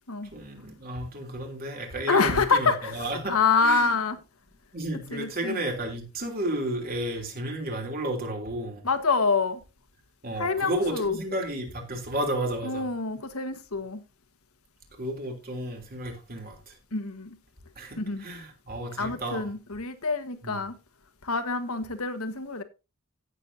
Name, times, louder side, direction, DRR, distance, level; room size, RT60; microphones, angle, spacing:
voice 1, 0.3-3.3 3.6-4.0 4.7-8.8 10.2-12.9 15.0-16.7 17.8-19.4 20.4-20.6, right 1 dB, 45° right, 3.3 m, -32 dB
voice 2, 2.1-4.2 5.1-5.6 8.8-9.6 10.4-11.2 12.6-14.0 16.9-17.4 18.0-18.2 19.0-20.7 21.2-22.6, left 4 dB, 85° left, 1.5 m, -26 dB
16.5 x 7.3 x 2.8 m
head